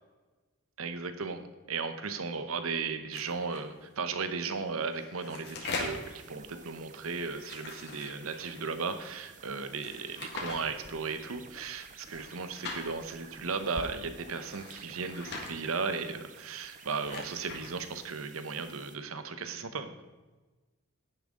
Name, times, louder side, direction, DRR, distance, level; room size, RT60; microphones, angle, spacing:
voice 1, 0.8-19.9, right 4 dB, 75° right, 9 dB, 0.9 m, -36 dB
sound 1, 3.1-3.6 4.8-6.1 7.3-8.6 9.8-10.6 12.0-12.8 14.4-15.5 16.7-17.7, left 3 dB, 50° left, 1.8 m, -41 dB
sound 2, 5.6-19.0, right 4 dB, 35° right, 0.6 m, -52 dB
10.5 x 9.7 x 3.8 m, 1.2 s
head